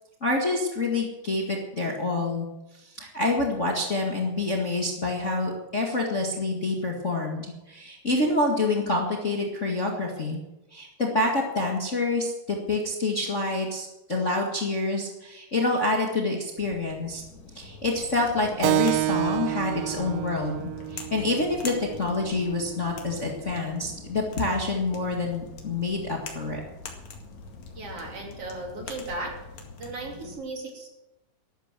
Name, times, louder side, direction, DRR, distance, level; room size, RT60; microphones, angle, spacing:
voice 1, 0.2-2.5 2.7-10.4 10.7-17.2 17.5-26.6, left 2 dB, 80° left, 0 dB, 0.6 m, -27 dB
sound 1, 16.6-30.4, left 4 dB, 50° left, 2.9 m, -43 dB
Keyboard (musical), 18.6-23.7, right 17 dB, 80° right, 2.6 m, -30 dB
voice 2, 27.7-29.3 29.8-30.9, right 2 dB, 35° right, 0 dB, 3.7 m, -36 dB
13.0 x 12.0 x 7.5 m, 0.96 s
omnidirectional pair, 4.9 m